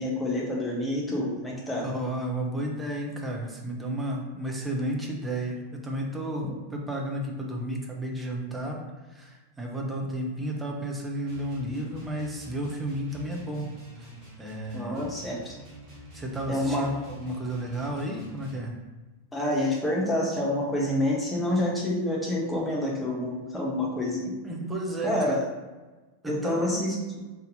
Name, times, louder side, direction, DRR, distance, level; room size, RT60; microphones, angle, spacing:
voice 1, 0.0-1.9 14.7-15.6 16.5-16.9 19.3-24.3 25.0-25.4 26.2-27.2, left 1 dB, 10° left, -3 dB, 1.1 m, -28 dB
voice 2, 1.8-8.8 9.1-14.1 14.4-15.0 16.1-18.8 24.4-25.4 26.2-26.9, right 1 dB, 10° right, 0 dB, 0.7 m, -32 dB
sound 1, 11.2-18.7, equal, 35° right, 1.4 m, -47 dB
4.0 x 3.5 x 2.7 m, 1.2 s
figure-of-eight pair, 90°, 0 cm